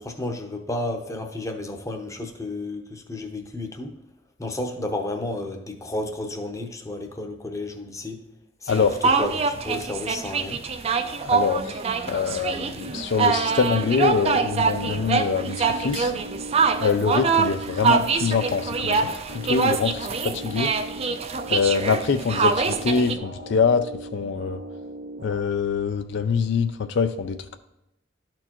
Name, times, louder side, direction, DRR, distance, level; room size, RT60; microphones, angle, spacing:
voice 1, 0.0-3.9 4.4-8.2 8.6-10.6, left 2 dB, 15° left, 4 dB, 0.7 m, -32 dB
sound 1, 8.7-23.1, right 5 dB, 30° right, 0.4 m, -24 dB
voice 2, 11.2-11.8 12.1-16.1 16.8-20.7 21.5-24.6 25.2-27.6, left 5 dB, 65° left, 9 dB, 0.4 m, -24 dB
sound 2, 12.8-25.4, right 1 dB, 85° right, 1.1 m, -39 dB
12.0 x 4.4 x 3.0 m, 0.87 s
head